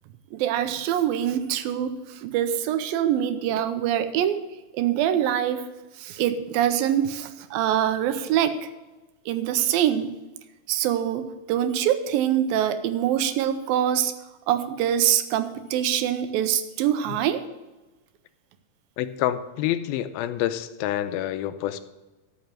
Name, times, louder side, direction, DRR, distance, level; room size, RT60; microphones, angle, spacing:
voice 1, 0.3-4.4 4.7-5.6 6.0-8.5 9.3-10.1 10.7-14.1 14.5-17.4, right 10 dB, 80° right, 10 dB, 2.5 m, -24 dB
voice 2, 19.0-21.8, left 12 dB, 85° left, 12 dB, 2.5 m, -27 dB
13.0 x 6.0 x 7.7 m, 1.1 s
omnidirectional pair, 4.2 m